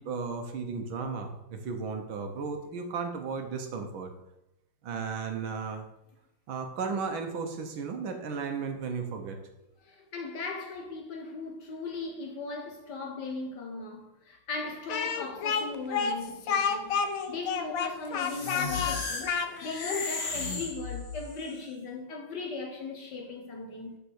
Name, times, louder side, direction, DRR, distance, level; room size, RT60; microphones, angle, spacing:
voice 1, 0.0-4.1 4.8-5.8 6.5-9.4, right 5 dB, 65° right, 1.6 m, -34 dB
voice 2, 9.8-17.0 17.3-19.3 19.6-24.0, left 3 dB, 55° left, 1.6 m, -38 dB
Speech, 14.9-20.0, left 6 dB, 90° left, 0.7 m, -30 dB
sound 1, 18.2-21.5, left 4 dB, 35° left, 1.2 m, -35 dB
6.6 x 6.0 x 6.3 m
omnidirectional pair, 2.4 m